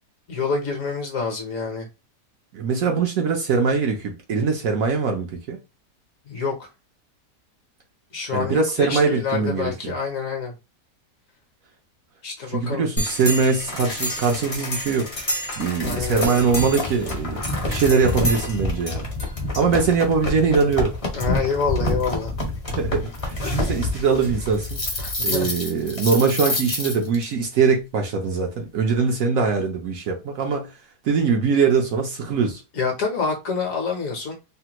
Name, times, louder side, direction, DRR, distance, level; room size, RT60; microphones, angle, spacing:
voice 1, 0.3-1.9 6.3-6.7 8.1-10.5 12.2-12.9 15.8-16.4 21.1-22.3 25.0-25.5 32.7-34.3, left 5 dB, 60° left, 1.1 m, -27 dB
voice 2, 2.5-5.6 8.3-9.9 12.5-15.1 15.6-19.1 19.6-20.9 22.7-24.8 25.2-30.7 31.0-32.6, right 5 dB, 65° right, 0.9 m, -22 dB
sound 1, 13.0-27.2, left 1 dB, 30° left, 0.6 m, -27 dB
3.3 x 2.2 x 2.9 m
omnidirectional pair, 1.8 m